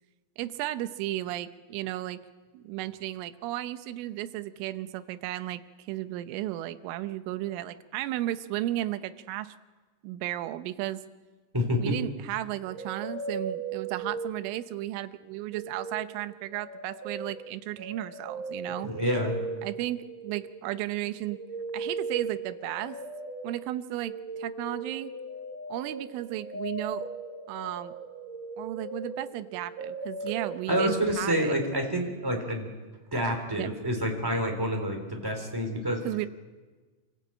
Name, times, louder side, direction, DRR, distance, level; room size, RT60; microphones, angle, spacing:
voice 1, 0.4-2.2 2.5-9.5 10.0-11.0 11.8-18.9 19.6-21.4 21.7-23.0 23.4-25.1 25.7-27.1 27.5-27.9 28.6-31.6 33.5-33.7 36.1-36.3, right 14 dB, 85° right, 11 dB, 3.3 m, -34 dB
voice 2, 11.5-11.9 18.8-19.3 30.7-32.7 33.1-36.0, equal, 5° right, 2 dB, 2.0 m, -28 dB
sound 1, 12.7-15.0 15.3-31.0, right 3 dB, 45° right, 6.2 m, -38 dB
27.0 x 15.5 x 8.7 m, 1.3 s
omnidirectional pair, 5.6 m